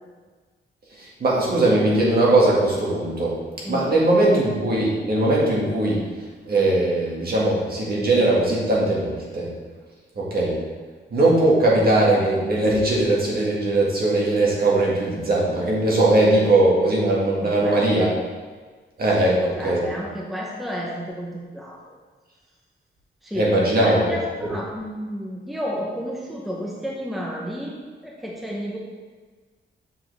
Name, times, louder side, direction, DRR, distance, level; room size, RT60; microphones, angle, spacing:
voice 1, 1.0-3.4 3.7-6.0 6.5-9.5 10.2-10.6 11.1-18.1 19.0-19.4 19.6-19.8 23.3-24.2, right 2 dB, 50° right, -5 dB, 1.8 m, -20 dB
voice 2, 3.6-3.9 17.4-18.1 19.2-22.0 23.2-28.8, equal, ahead, -3 dB, 0.7 m, -31 dB
7.1 x 5.8 x 3.4 m, 1.4 s
wide cardioid pair, 165°, 20 cm